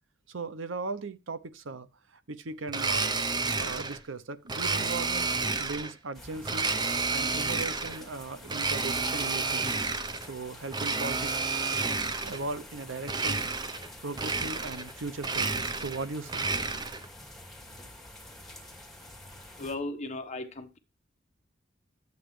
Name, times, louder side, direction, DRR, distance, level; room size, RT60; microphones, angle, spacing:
voice 1, 0.3-6.7 7.1-9.7 10.2-11.4 12.2-13.4 14.0-16.5, right 3 dB, 80° right, 0.9 m, -38 dB
Domestic sounds home sounds, 2.7-4.0 4.5-5.9 6.4-8.0 8.5-10.3 10.7-12.4 13.0-13.9 14.1-14.9 15.2-17.1, right 4 dB, 20° right, 0.8 m, -30 dB
sound 1, 6.1-19.7, left 1 dB, ahead, 2.2 m, -48 dB
voice 2, 19.6-20.8, left 2 dB, 35° left, 1.2 m, -36 dB
12.5 x 8.3 x 3.3 m
head